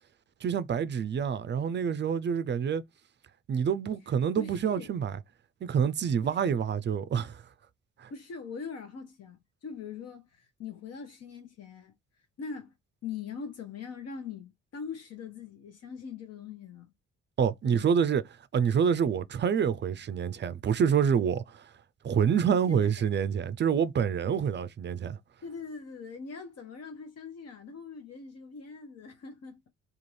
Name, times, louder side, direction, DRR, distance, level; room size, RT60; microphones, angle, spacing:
voice 1, 0.4-2.8 3.5-5.2 5.6-7.4 8.0-8.1 17.4-18.2 18.5-21.7 22.0-25.2, right 7 dB, 40° right, 0.4 m, -27 dB
voice 2, 4.1-4.9 6.2-6.6 8.1-11.9 12.4-12.7 13.0-16.9 17.6-17.9 22.5-23.1 25.4-29.7, left 5 dB, 55° left, 0.8 m, -42 dB
2.6 x 2.4 x 3.1 m
cardioid pair, 90°, 30 cm